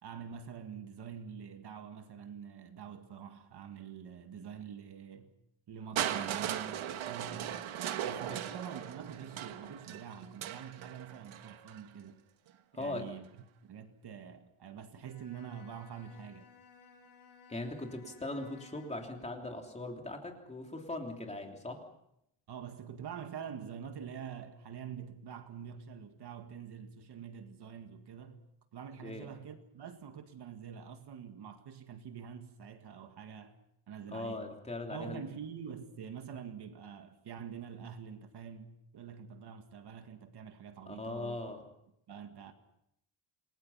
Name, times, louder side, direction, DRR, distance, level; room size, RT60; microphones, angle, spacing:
voice 1, 0.0-5.3 5.7-7.7 8.0-12.2 12.7-13.3 13.6-16.5 22.5-28.4 28.7-33.6 33.9-34.5 34.9-41.4 42.1-42.5, right 7 dB, 50° right, 2.0 m, -46 dB
Crushing, 6.0-11.9 12.8-12.9, right 10 dB, 70° right, 1.7 m, -38 dB
voice 2, 12.7-13.1 17.5-21.8 29.0-29.3 34.1-35.2 40.9-41.6, left 2 dB, 15° left, 3.2 m, -40 dB
Bowed string instrument, 15.0-19.2, left 5 dB, 50° left, 6.2 m, -58 dB
29.0 x 21.5 x 5.7 m
cardioid pair, 170°, 50 cm